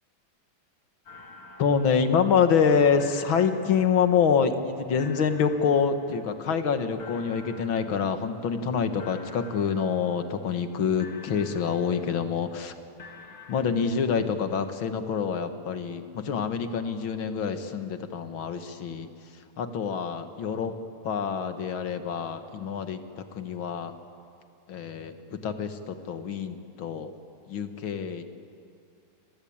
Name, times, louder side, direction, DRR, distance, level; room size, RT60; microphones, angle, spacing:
sound 1, 1.0-2.7 3.0-4.6 5.0-6.6 7.0-8.7 9.0-10.7 11.0-12.6 13.0-14.6, left 3 dB, 85° left, 3.6 m, -49 dB
voice 1, 1.6-12.8 13.5-20.7 21.0-23.9 24.7-27.1 27.5-28.2, left 6 dB, 70° left, 9 dB, 2.3 m, -26 dB
28.5 x 22.5 x 8.8 m, 2.5 s
omnidirectional pair, 2.3 m